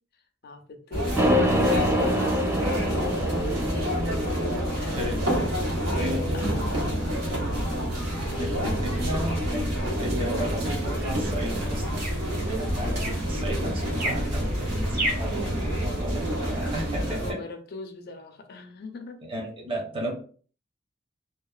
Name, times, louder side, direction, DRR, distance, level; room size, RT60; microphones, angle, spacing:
voice 1, 0.4-3.7 4.8-5.5 6.3-7.7 8.3-9.2 16.9-19.2, left 3 dB, 55° left, 7 dB, 0.4 m, -41 dB
sound 1, 0.9-17.3, equal, 85° right, 1.1 m, -28 dB
sound 2, 1.2-5.3, equal, 15° right, 0.3 m, -26 dB
voice 2, 4.9-5.5 6.0-6.4 8.4-9.7 10.0-17.4 19.2-20.1, equal, 30° right, -1 dB, 0.7 m, -34 dB
sound 3, 8.6-15.4, right 1 dB, 50° right, 1.2 m, -37 dB
2.8 x 2.1 x 2.3 m, 0.42 s
head